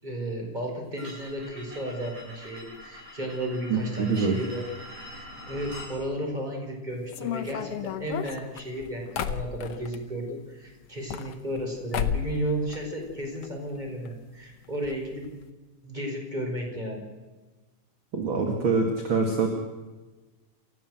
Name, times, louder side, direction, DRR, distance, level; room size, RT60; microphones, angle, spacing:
voice 1, 0.0-4.6 5.1-15.2 15.8-17.0, right 1 dB, 15° right, 1 dB, 5.1 m, -33 dB
sound 1, 1.0-5.9, equal, 75° right, 8.4 m, -44 dB
voice 2, 3.7-4.4 18.1-19.5, right 4 dB, 40° right, 3 dB, 2.7 m, -25 dB
sound 2, 7.1-10.0 10.9-11.7 11.9-12.4 12.7-13.5 13.8-13.9 14.1-14.2 14.8-15.0 15.2-15.4, left 9 dB, 60° left, 1.7 m, -32 dB
28.5 x 14.5 x 7.8 m, 1.2 s
omnidirectional pair, 3.5 m